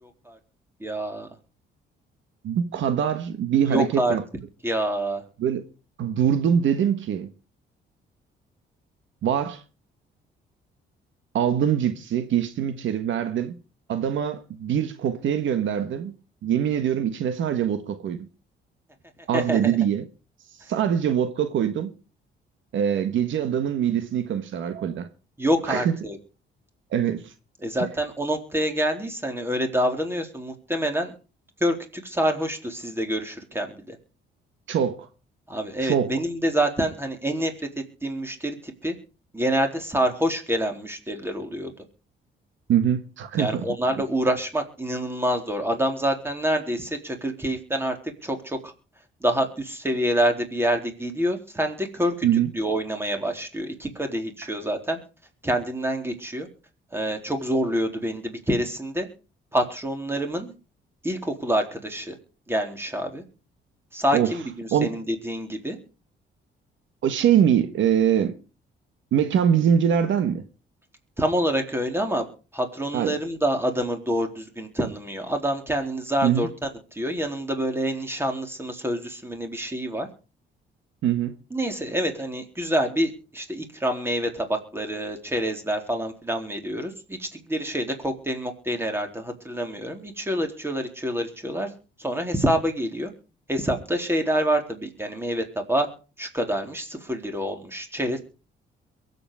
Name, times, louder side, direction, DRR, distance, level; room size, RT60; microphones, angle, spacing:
voice 1, 0.0-0.4 0.8-1.3 3.7-4.2 4.6-5.2 19.3-19.7 25.4-26.2 27.6-31.1 31.6-34.0 35.5-37.5 38.0-39.0 39.3-41.7 43.4-48.0 48.2-48.7 49.2-52.3 52.5-55.0 55.4-56.5 56.9-59.1 59.5-60.5 61.0-62.1 62.5-63.2 63.9-65.8 71.2-72.3 72.5-76.5 76.9-80.1 81.5-91.7 92.0-93.1 93.5-95.9 96.2-98.2, equal, 10° right, 3.9 m, -27 dB
voice 2, 2.4-4.2 5.4-5.6 6.0-7.3 9.2-9.6 11.3-13.6 13.9-16.1 16.4-18.3 19.3-20.0 20.6-21.9 22.7-25.1 25.7-25.9 26.9-27.3 34.7-35.1 35.8-36.1 42.7-43.7 52.2-52.5 64.1-64.4 64.7-64.9 67.0-68.3 69.1-70.4 72.9-73.2 76.2-76.5 81.0-81.4, right 9 dB, 75° right, 1.5 m, -23 dB
23.0 x 8.4 x 4.9 m
cardioid pair, 90°, 20 cm